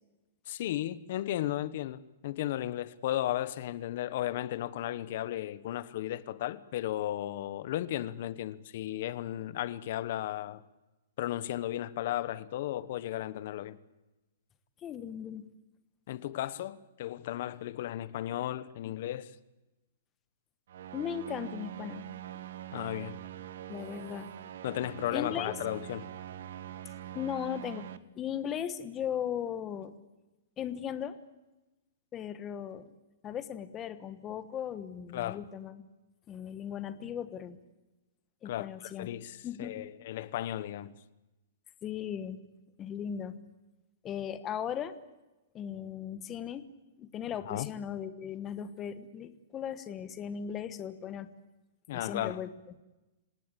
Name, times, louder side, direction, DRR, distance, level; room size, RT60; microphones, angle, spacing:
voice 1, 0.5-10.6 11.2-13.8 16.1-19.3 22.7-23.2 24.6-26.1 35.1-35.4 38.4-40.9 47.4-47.7 51.9-52.4, left 13 dB, 45° left, 1.1 m, -35 dB
voice 2, 14.8-15.5 20.9-22.1 23.7-24.3 25.1-25.6 27.1-27.9 28.2-29.9 30.6-31.2 32.1-32.9 33.2-35.8 36.3-37.6 38.4-39.1 39.4-39.9 41.8-42.4 42.8-43.4 44.0-44.9 45.5-46.7 47.0-51.3 51.9-52.5, left 9 dB, 15° left, 1.2 m, -37 dB
sound 1, 20.7-28.0, right 12 dB, 60° right, 1.4 m, -44 dB
26.5 x 18.0 x 8.4 m
hypercardioid pair, 170°, 0 cm